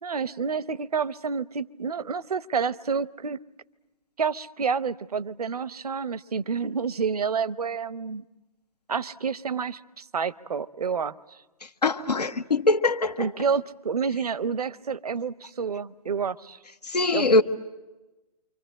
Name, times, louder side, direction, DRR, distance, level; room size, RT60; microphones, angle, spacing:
voice 1, 0.0-3.4 4.2-8.3 8.9-11.1 13.2-16.6 17.1-17.4, right 6 dB, 70° right, 0.8 m, -29 dB
voice 2, 11.8-13.3 16.9-17.4, left 2 dB, 80° left, 1.3 m, -22 dB
29.0 x 26.0 x 7.6 m
figure-of-eight pair, 130°, 20 cm